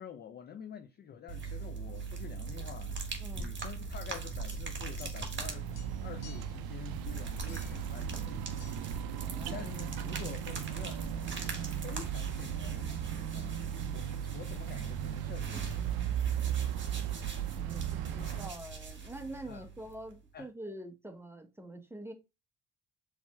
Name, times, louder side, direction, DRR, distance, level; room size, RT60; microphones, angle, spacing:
voice 1, 0.0-5.7 6.0-9.0 9.2-13.6 13.9-16.0 18.2-18.4 19.5-19.7 20.3-20.5, left 8 dB, 25° left, 0.3 m, -48 dB
sound 1, 1.3-20.2, right 5 dB, 25° right, 1.6 m, -40 dB
sound 2, 4.5-5.5 5.7-6.6 7.5-7.9 8.6-8.8, left 8 dB, 75° left, 1.2 m, -55 dB
sound 3, 5.4-18.5, right 11 dB, 50° right, 0.5 m, -38 dB
voice 2, 9.2-9.7 17.5-22.1, right 1 dB, 5° right, 0.8 m, -45 dB
7.0 x 3.2 x 2.2 m
hypercardioid pair, 55°, 49 cm